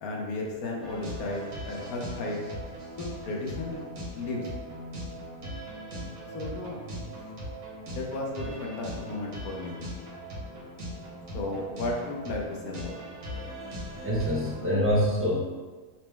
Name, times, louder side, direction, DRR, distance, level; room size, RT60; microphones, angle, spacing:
voice 1, 0.0-2.4 3.0-3.8 4.1-4.5 6.3-6.8 7.9-9.8 11.3-12.9, left 2 dB, 75° left, -1 dB, 1.2 m, -34 dB
sound 1, 0.8-14.6, equal, 70° right, 1.5 m, -39 dB
voice 2, 14.0-15.4, equal, 10° right, -7 dB, 0.7 m, -25 dB
5.9 x 2.1 x 3.3 m, 1.4 s
omnidirectional pair, 1.6 m